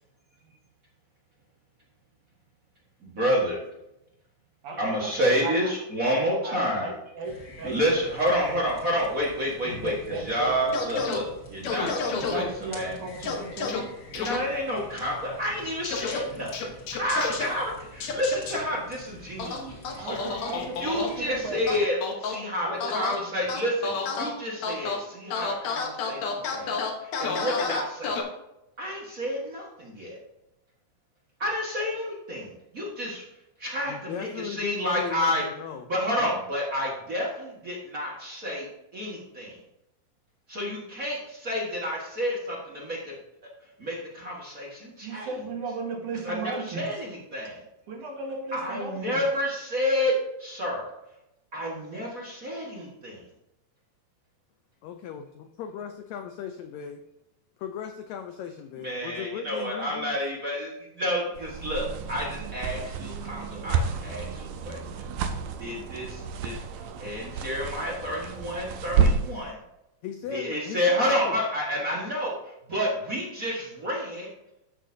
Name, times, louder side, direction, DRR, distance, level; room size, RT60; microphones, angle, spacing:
voice 1, 3.0-3.6 4.8-6.9 7.6-9.9 10.2-12.9 13.3-13.4 14.1-20.4 20.8-26.7 27.0-28.2 28.8-30.2 31.4-33.2 33.6-35.4 35.9-38.7 38.9-39.6 40.5-43.1 43.8-45.3 46.2-47.6 48.5-50.1 50.4-50.9 51.5-53.2 58.8-65.1 65.5-66.6 67.0-69.6 70.3-74.3, equal, 40° right, -4 dB, 1.2 m, -29 dB
voice 2, 4.6-5.7 6.4-7.8 8.4-8.6 9.6-11.0 12.1-13.9 19.7-21.8 22.6-23.2 45.0-46.9 47.9-49.2, right 3 dB, 65° right, -2 dB, 3.2 m, -36 dB
sound 1, 7.2-21.8, left 1 dB, 30° left, 2.0 m, -47 dB
sound 2, 10.7-11.2 11.6-12.4 13.2-13.8 14.1-14.4 15.8-16.2 16.5-17.4 18.0-18.6 19.4-21.1 21.7-22.4 22.8-23.1 23.5-24.3 24.6-25.0 25.3-28.2, left 4 dB, 65° left, 2.2 m, -30 dB
voice 3, 33.9-35.9 36.2-36.3 54.8-57.0 57.6-60.2 70.0-71.4, left 8 dB, 90° left, 7 dB, 1.5 m, -37 dB
sound 3, 61.3-69.4, right 5 dB, 80° right, 2.3 m, -30 dB
14.0 x 6.4 x 2.7 m, 0.89 s
omnidirectional pair, 3.9 m